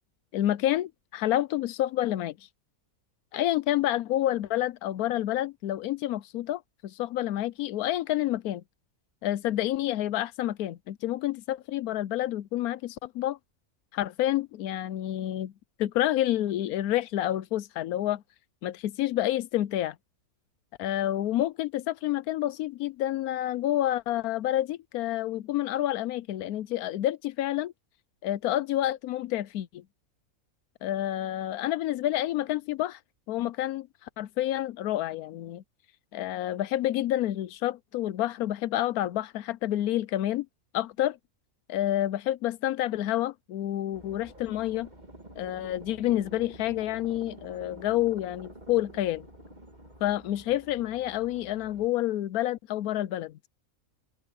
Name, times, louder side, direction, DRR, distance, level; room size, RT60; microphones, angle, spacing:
voice 1, 0.3-2.4 3.3-8.6 9.2-13.4 13.9-15.5 15.8-18.2 18.6-20.0 20.8-27.7 28.2-29.8 30.8-33.0 33.3-33.9 34.2-35.6 36.1-40.5 40.7-41.2 41.7-44.9 45.4-49.3 50.0-53.4, left 13 dB, 85° left, 1.1 m, -29 dB
sound 1, 43.9-51.9, right 1 dB, 30° right, 2.9 m, -49 dB
open air
omnidirectional pair, 1.5 m